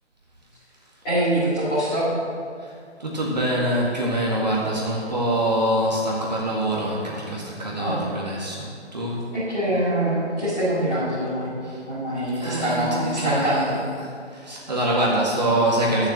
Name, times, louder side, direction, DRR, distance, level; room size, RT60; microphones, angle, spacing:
voice 1, 1.0-2.1 7.7-8.0 9.3-11.5 11.9-13.7, right 1 dB, 5° left, -17 dB, 2.6 m, -24 dB
voice 2, 3.0-9.2 11.6-11.8 12.4-13.6 14.3-16.1, right 1 dB, 35° right, -4 dB, 1.9 m, -24 dB
12.0 x 7.3 x 7.5 m, 2.3 s
figure-of-eight pair, 180°, 35 cm